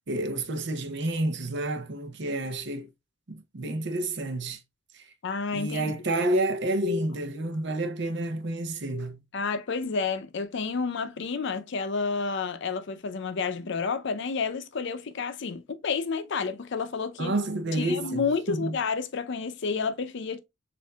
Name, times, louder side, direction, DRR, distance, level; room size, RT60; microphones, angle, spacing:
voice 1, 0.1-2.9 3.3-4.6 5.5-9.2 17.2-18.8, right 1 dB, 60° right, 0.7 m, -29 dB
voice 2, 5.2-6.0 9.3-17.3 17.7-20.4, left 5 dB, 65° left, 0.5 m, -30 dB
7.1 x 2.6 x 2.3 m
head